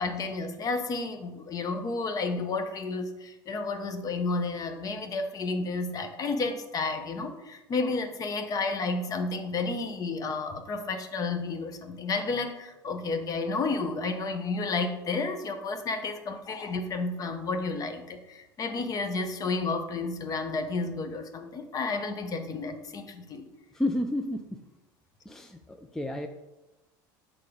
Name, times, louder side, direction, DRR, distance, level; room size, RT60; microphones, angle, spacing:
voice 1, 0.0-23.4, left 3 dB, 35° left, 7 dB, 0.9 m, -31 dB
voice 2, 23.7-24.4 25.3-26.3, left 1 dB, 5° left, 5 dB, 0.4 m, -31 dB
6.7 x 3.7 x 5.1 m, 1.0 s
supercardioid pair, 105°, 10 cm